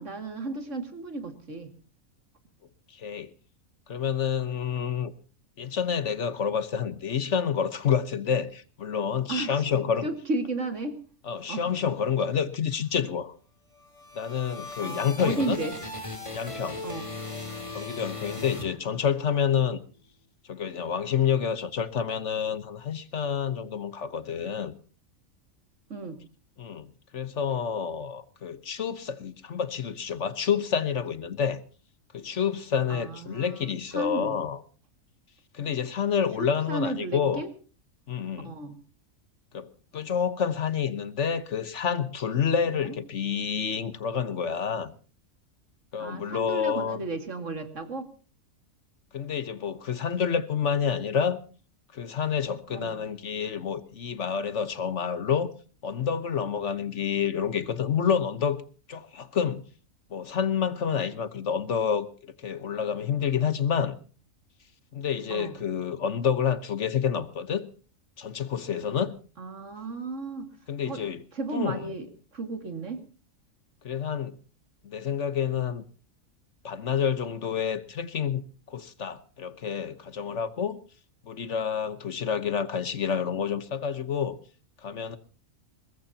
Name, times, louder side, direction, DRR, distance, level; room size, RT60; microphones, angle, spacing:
voice 1, 0.0-1.7 9.3-11.0 11.5-11.8 14.8-15.7 16.8-17.1 25.9-26.2 32.9-34.4 36.4-37.5 38.4-38.8 42.7-43.0 46.0-48.1 52.7-52.9 65.3-65.6 69.4-70.5 70.9-71.0 71.3-73.0, right 2 dB, 60° right, 2.5 m, -34 dB
voice 2, 2.9-3.3 3.9-5.1 5.6-10.1 11.3-13.3 14.1-15.6 16.3-16.8 17.7-19.8 20.5-24.8 26.6-26.9 27.1-31.6 32.1-34.6 35.5-37.4 38.1-38.5 39.5-39.7 39.9-44.9 45.9-47.1 49.1-51.4 51.9-55.5 55.8-58.6 58.9-59.7 60.1-64.0 64.9-67.7 68.2-69.1 70.7-71.2 71.5-71.9 73.8-74.4 74.8-75.8 76.6-80.8 81.3-84.4 84.8-85.2, left 7 dB, 60° left, 1.3 m, -28 dB
sound 1, 13.7-19.3, left 2 dB, 20° left, 3.0 m, -38 dB
22.0 x 20.0 x 2.8 m
omnidirectional pair, 1.4 m